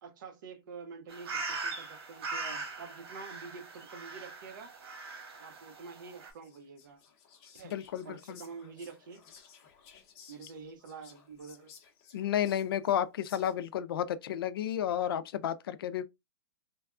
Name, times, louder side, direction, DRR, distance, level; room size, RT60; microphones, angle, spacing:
voice 1, 0.0-4.7 5.4-7.0 7.5-7.8 8.0-9.2 10.3-11.7, right 5 dB, 50° right, 0.7 m, -47 dB
sound 1, 1.1-6.3, right 4 dB, 75° right, 1.3 m, -40 dB
Whispering, 6.3-13.8, left 7 dB, 35° left, 0.7 m, -57 dB
voice 2, 7.6-8.4 12.1-16.0, left 10 dB, 65° left, 0.4 m, -32 dB
3.3 x 2.2 x 2.4 m
hypercardioid pair, 160°, 13 cm